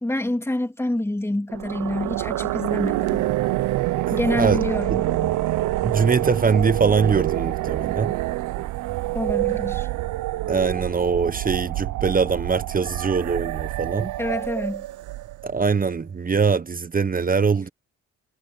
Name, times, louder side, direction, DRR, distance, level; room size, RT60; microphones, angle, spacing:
voice 1, 0.0-3.3 4.1-5.4 9.1-9.9 14.2-14.9, left 1 dB, 10° left, 2.8 m, -27 dB
sound 1, 1.5-15.6, right 16 dB, 80° right, 0.7 m, -26 dB
voice 2, 4.1-4.6 5.8-8.2 10.5-14.1 15.4-17.7, right 5 dB, 30° right, 1.0 m, -22 dB
cardioid pair, 90°, 30 cm